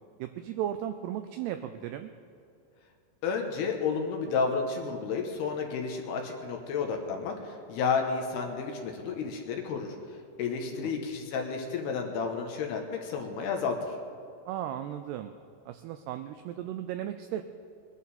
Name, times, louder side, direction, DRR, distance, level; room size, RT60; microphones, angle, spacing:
voice 1, 0.2-2.1 10.7-11.0 14.5-15.3 15.7-17.4, right 11 dB, 85° right, 8 dB, 2.3 m, -36 dB
voice 2, 3.2-14.0, left 5 dB, 70° left, 3 dB, 2.8 m, -31 dB
21.0 x 11.5 x 4.2 m, 2.5 s
omnidirectional pair, 5.2 m